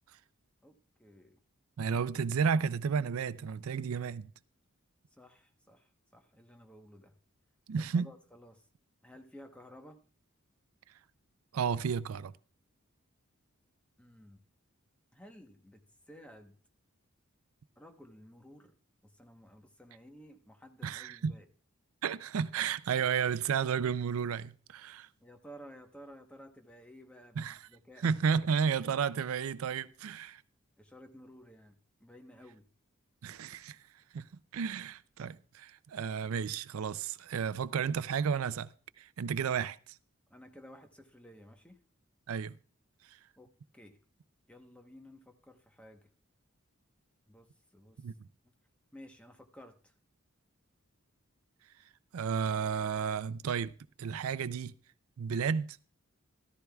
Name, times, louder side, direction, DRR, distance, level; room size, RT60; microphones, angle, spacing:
voice 1, 0.6-1.4 5.1-7.1 7.8-8.7 9.0-10.0 14.0-14.4 15.1-15.8 16.1-16.6 17.8-18.7 19.0-21.5 25.2-28.4 30.8-32.7 40.3-41.8 43.4-44.0 44.5-46.1 47.3-48.0 48.4-48.5 48.9-49.9, equal, 5° left, 0.9 m, -54 dB
voice 2, 1.8-4.3 7.7-8.1 11.5-12.3 20.8-21.3 22.0-25.1 27.4-27.6 28.0-30.4 33.2-33.8 34.1-34.2 34.5-38.7 39.0-40.0 42.3-42.6 43.1-43.2 48.0-48.1 52.1-53.7 54.0-54.7 55.2-55.8, right 6 dB, 85° right, 0.4 m, -32 dB
14.0 x 13.5 x 2.3 m
head